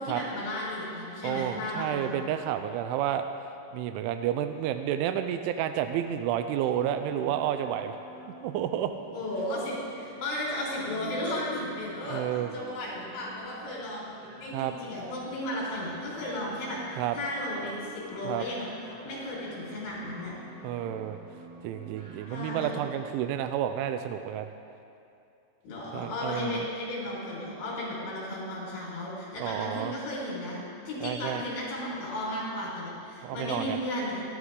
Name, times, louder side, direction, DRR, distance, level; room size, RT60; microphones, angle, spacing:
voice 1, 0.0-2.1 9.1-12.2 12.5-18.7 19.1-20.4 22.3-22.8 25.6-34.2, left 1 dB, 70° left, -5 dB, 6.8 m, -34 dB
voice 2, 1.2-3.2 3.7-8.0 8.4-8.9 12.1-12.5 14.5-14.7 17.0-17.2 18.2-18.5 20.6-21.2 21.6-24.5 25.9-26.7 29.4-29.9 31.0-31.4 33.2-33.8, right 10 dB, 90° right, 8 dB, 3.1 m, -30 dB
sound 1, 6.0-22.7, right 1 dB, 40° right, 3.6 m, -49 dB
24.0 x 12.0 x 3.8 m, 2.6 s
omnidirectional pair, 5.4 m